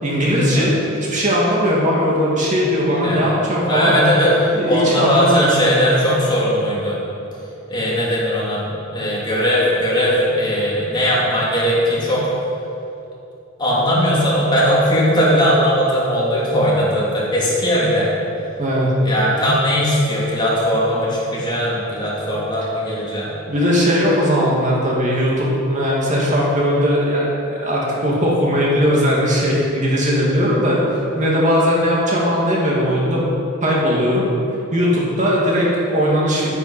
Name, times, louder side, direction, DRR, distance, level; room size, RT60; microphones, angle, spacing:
voice 1, 0.0-3.9 4.5-5.9 18.6-18.9 23.5-27.3 27.6-30.8 31.2-33.3 33.6-34.3 34.7-36.5, equal, 40° right, -4 dB, 2.3 m, -18 dB
voice 2, 3.7-7.0 7.7-12.3 13.6-18.1 19.0-23.3, equal, 25° left, -6 dB, 3.0 m, -18 dB
11.0 x 9.7 x 5.8 m, 2.8 s
head